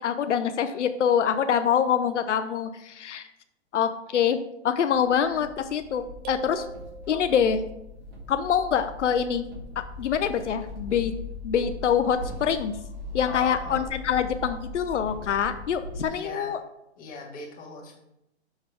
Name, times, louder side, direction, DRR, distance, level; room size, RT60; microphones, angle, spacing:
voice 1, 0.0-3.3 3.7-4.4 4.6-6.6 7.1-7.6 8.3-9.5 9.8-11.1 11.4-12.8 13.1-16.6, left 8 dB, 90° left, 9 dB, 0.5 m, -25 dB
sound 1, 4.9-16.0, left 2 dB, 55° right, 2.0 m, -40 dB
sound 2, 6.2-7.8, right 6 dB, 30° right, 0.6 m, -41 dB
voice 2, 13.3-13.9 16.1-16.5 17.0-18.0, left 3 dB, 25° left, -2 dB, 1.5 m, -39 dB
6.2 x 4.0 x 4.8 m, 0.86 s
hypercardioid pair, 125°, 34 cm